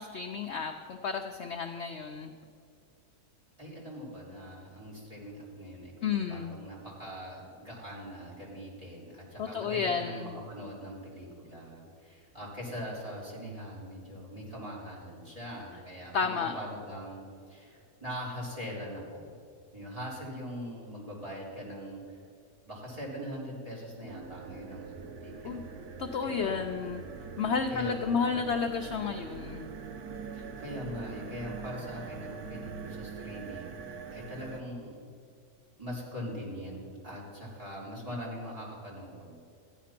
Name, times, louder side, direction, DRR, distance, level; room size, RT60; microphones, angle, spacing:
voice 1, 0.0-2.3 6.0-6.6 9.4-10.3 16.1-16.5 25.4-25.6 26.0-27.0 27.4-29.7, left 6 dB, 60° left, 5 dB, 0.8 m, -32 dB
voice 2, 3.6-19.3 19.7-22.2 22.6-25.5 26.2-26.6 27.7-28.9 30.3-35.0 35.8-39.4, equal, 25° right, -5 dB, 3.7 m, -42 dB
sound 1, 24.1-34.6, right 5 dB, 85° right, 1.3 m, -43 dB
14.5 x 10.0 x 5.9 m, 2.3 s
omnidirectional pair, 1.6 m